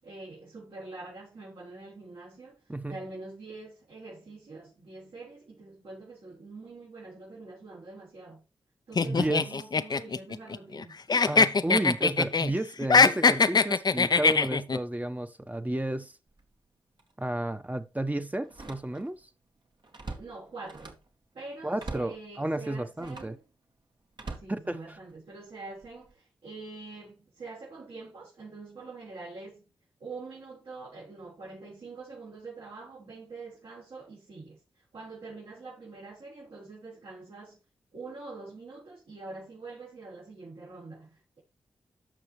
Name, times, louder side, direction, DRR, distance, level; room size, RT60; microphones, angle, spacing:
voice 1, 0.0-8.4 8.9-11.0 20.1-21.0 21.3-23.4 24.3-29.7 30.0-37.6 37.9-41.4, right 3 dB, 70° right, 5.3 m, -45 dB
sound 1, 9.0-10.8 11.1-12.5 12.8-14.8, left 4 dB, 45° left, 0.7 m, -22 dB
voice 2, 9.0-9.5 11.3-16.1 17.2-19.2 21.6-23.4 24.5-24.8, right 1 dB, 15° right, 1.1 m, -32 dB
Slam, 16.3-16.5 17.0-17.1 18.4-19.2 19.6-21.1 21.8-22.2 23.0-23.4 24.1-25.2 25.8-26.1, right 3 dB, 50° right, 1.8 m, -43 dB
13.5 x 5.5 x 3.2 m
supercardioid pair, 40°, 10 cm